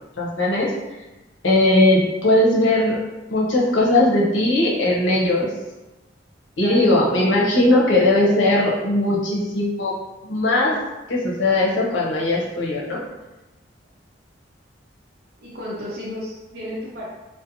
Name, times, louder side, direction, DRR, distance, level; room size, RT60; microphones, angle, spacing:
voice 1, 0.2-0.7 1.4-3.0 3.3-5.5 6.6-9.9 10.2-10.8 11.1-13.0, left 1 dB, 75° left, -3 dB, 0.7 m, -19 dB
voice 2, 6.6-6.9 15.4-17.1, left 1 dB, 55° right, -6 dB, 0.6 m, -32 dB
2.7 x 2.1 x 2.6 m, 1.1 s
head